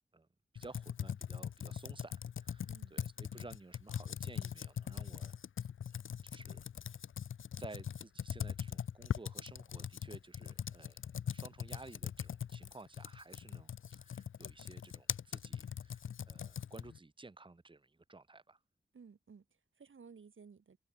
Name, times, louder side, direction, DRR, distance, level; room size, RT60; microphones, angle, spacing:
voice 1, 0.5-5.4 6.2-6.9 7.6-18.6, right 3 dB, 25° right, 1.2 m, -54 dB
Computer keyboard, 0.6-17.0, left 8 dB, 90° left, 0.5 m, -41 dB
voice 2, 2.7-3.0 18.9-20.8, right 5 dB, 90° right, 3.0 m, -57 dB
wide cardioid pair, 90°, 20 cm